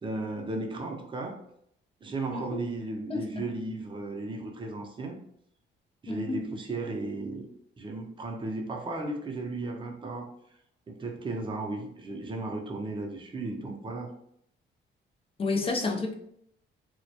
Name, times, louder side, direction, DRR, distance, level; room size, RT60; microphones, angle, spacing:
voice 1, 0.0-1.4 2.0-5.2 6.0-7.5 7.8-10.3 10.9-14.1, right 2 dB, 25° right, 2 dB, 0.5 m, -35 dB
voice 2, 2.3-2.6 3.1-3.2 6.1-6.4 15.4-16.1, left 3 dB, 30° left, 2 dB, 0.4 m, -30 dB
2.2 x 2.1 x 2.7 m, 0.71 s
cardioid pair, 90°, 20 cm